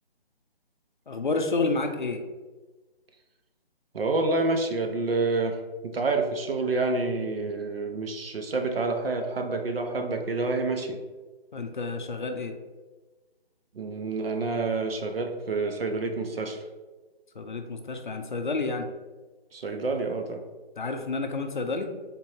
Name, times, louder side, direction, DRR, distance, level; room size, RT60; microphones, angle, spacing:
voice 1, 1.1-2.2 11.5-12.6 17.3-18.9 20.8-21.9, left 3 dB, 50° left, 6 dB, 0.5 m, -30 dB
voice 2, 3.9-11.0 13.7-16.6 19.5-20.4, right 3 dB, 70° right, 5 dB, 0.7 m, -28 dB
3.6 x 2.8 x 4.3 m, 1.3 s
hypercardioid pair, 170°, 30 cm